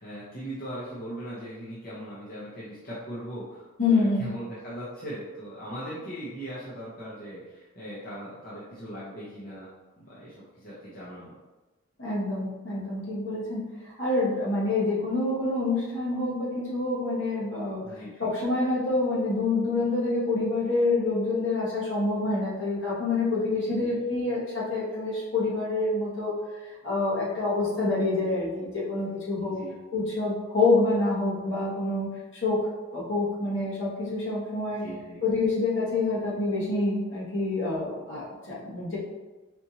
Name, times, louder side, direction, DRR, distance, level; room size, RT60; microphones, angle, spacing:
voice 1, 0.0-9.7 10.0-11.3 17.8-18.3 23.6-23.9 29.4-29.7 34.8-35.2, equal, 45° left, -9 dB, 0.8 m, -39 dB
voice 2, 3.8-4.3 12.0-26.3 26.6-29.6 29.9-34.8 35.2-39.0, left 2 dB, 65° left, -7 dB, 1.3 m, -27 dB
4.3 x 2.5 x 2.8 m, 1.2 s
head